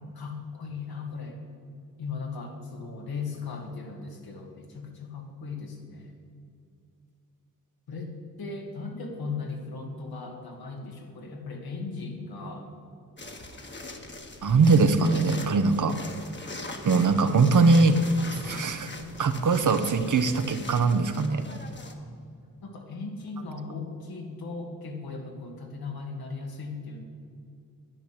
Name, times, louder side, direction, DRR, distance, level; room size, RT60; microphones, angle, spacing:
voice 1, 0.1-1.4 2.0-6.1 7.9-12.7 14.5-15.6 17.3-17.7 22.0-22.1 22.6-27.0, left 4 dB, 85° left, 1 dB, 2.4 m, -37 dB
sound 1, 13.2-21.9, left 2 dB, 30° left, 1.4 m, -42 dB
voice 2, 14.4-15.9 16.8-18.0 18.4-18.9 19.2-21.4, right 4 dB, 55° right, 9 dB, 1.0 m, -21 dB
10.5 x 10.5 x 7.9 m, 2.5 s
wide cardioid pair, 100°, 36 cm